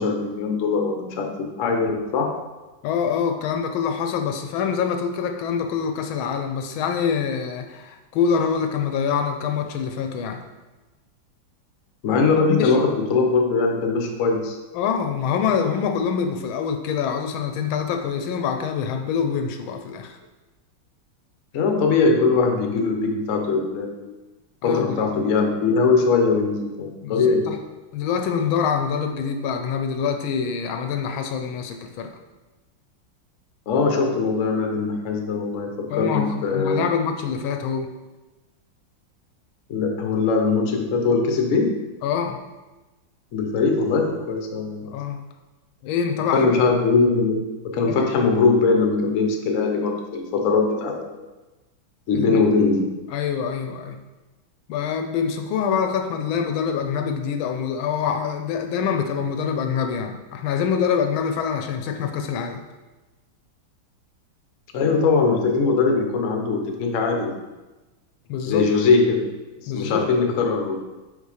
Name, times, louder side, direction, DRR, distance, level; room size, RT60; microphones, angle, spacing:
voice 1, 0.0-2.4 12.0-14.6 21.5-24.1 24.6-27.5 33.7-36.9 39.7-41.7 43.3-44.9 46.3-51.3 52.1-52.9 64.7-67.4 68.5-69.3 69.6-70.8, left 4 dB, 60° left, 2 dB, 0.8 m, -21 dB
voice 2, 2.8-10.4 12.1-12.8 14.7-20.2 24.6-25.0 27.0-27.6 27.9-32.1 35.9-37.9 42.0-42.4 44.8-45.2 45.8-46.5 47.9-48.1 52.1-52.4 53.1-54.0 54.7-62.6 68.3-68.7 69.7-70.1, left 7 dB, 80° left, 5 dB, 1.4 m, -25 dB
5.5 x 4.1 x 4.9 m, 1.1 s
omnidirectional pair, 2.3 m